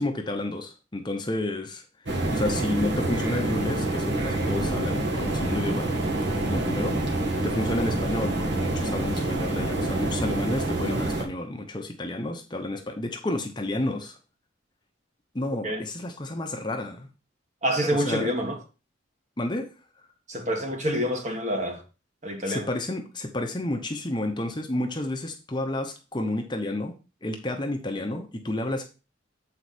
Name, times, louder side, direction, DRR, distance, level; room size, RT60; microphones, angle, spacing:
voice 1, 0.0-5.9 6.3-7.0 7.4-14.2 15.3-17.1 17.9-18.3 19.4-19.7 22.5-26.9 27.2-28.8, left 1 dB, 25° left, 0.8 m, -30 dB
sound 1, 2.1-11.2, right 2 dB, 60° right, 1.8 m, -27 dB
voice 2, 17.6-18.6 20.3-21.8 22.2-22.7, equal, 35° right, 1.6 m, -27 dB
7.7 x 4.8 x 4.2 m
head